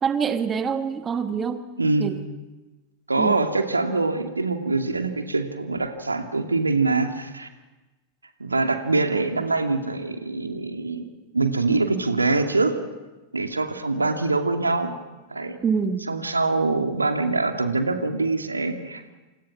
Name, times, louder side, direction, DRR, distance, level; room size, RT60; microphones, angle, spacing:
voice 1, 0.0-1.6 2.0-2.2 3.2-3.4 15.6-16.0, right 6 dB, 20° right, 9 dB, 1.7 m, -25 dB
voice 2, 1.8-2.2 3.1-7.5 8.4-11.0 11.3-12.7 13.3-14.9 15.3-15.6 16.1-19.1, right 3 dB, 80° right, 5 dB, 2.5 m, -24 dB
29.5 x 28.5 x 6.2 m, 1.1 s
figure-of-eight pair, 90°, 0 cm